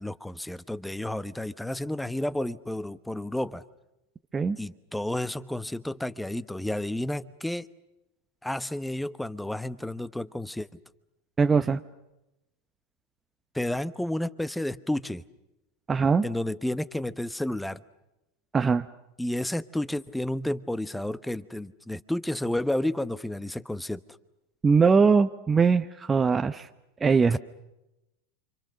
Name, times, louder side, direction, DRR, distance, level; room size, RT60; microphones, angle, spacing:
voice 1, 0.0-3.6 4.6-7.7 8.4-10.7 13.5-15.2 16.2-17.8 19.2-24.0 27.3-27.4, left 1 dB, 5° left, 14 dB, 1.1 m, -31 dB
voice 2, 11.4-11.8 15.9-16.2 18.5-18.9 24.6-26.7 27.0-27.4, right 5 dB, 20° right, 8 dB, 0.9 m, -21 dB
29.0 x 26.0 x 6.5 m, 0.94 s
hypercardioid pair, 95°, 0 cm